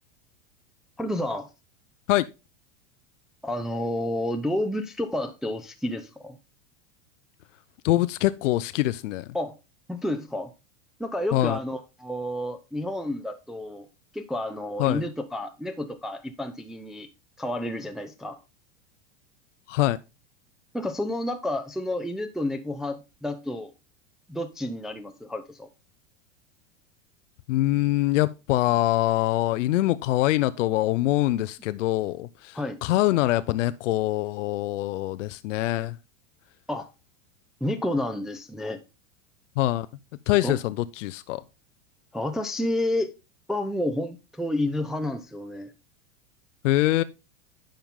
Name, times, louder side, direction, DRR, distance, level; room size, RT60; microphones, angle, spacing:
voice 1, 1.0-1.5 3.4-6.4 9.3-9.5 9.9-10.5 11.0-13.9 14.1-17.1 17.4-18.4 20.7-23.7 24.3-25.7 32.5-32.8 36.7-36.9 37.6-38.8 40.4-40.6 42.1-43.1 43.5-45.7, left 1 dB, ahead, 0.6 m, -30 dB
voice 2, 7.8-9.3 11.3-11.6 14.8-15.0 19.7-20.0 27.5-36.0 39.6-39.9 40.3-41.4 46.6-47.0, left 16 dB, 80° left, 0.6 m, -24 dB
10.5 x 5.8 x 3.6 m
supercardioid pair, 120°, 37 cm